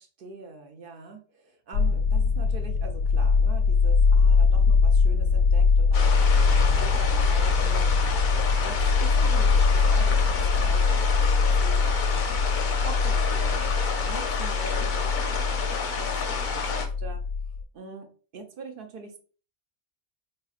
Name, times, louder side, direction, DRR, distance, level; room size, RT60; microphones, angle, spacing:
voice 1, 0.0-17.2 17.7-18.1 18.3-19.2, right 3 dB, 60° right, 5 dB, 0.6 m, -43 dB
sound 1, 1.7-17.6, left 5 dB, 90° left, 1.0 m, -22 dB
sound 2, 5.9-16.9, left 5 dB, 50° left, 0.6 m, -31 dB
4.0 x 3.1 x 2.4 m, 0.39 s
omnidirectional pair, 1.3 m